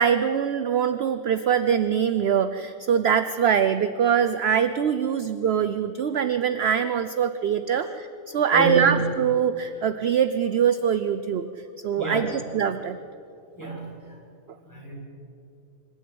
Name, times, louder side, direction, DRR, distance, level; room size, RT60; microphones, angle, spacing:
voice 1, 0.0-11.5 11.8-13.0, right 8 dB, 55° right, 11 dB, 0.8 m, -23 dB
voice 2, 8.5-9.0 12.0-12.2 13.6-14.2 14.6-15.0, right 3 dB, 10° left, -4 dB, 7.0 m, -27 dB
26.0 x 13.5 x 9.4 m, 2.7 s
omnidirectional pair, 1.6 m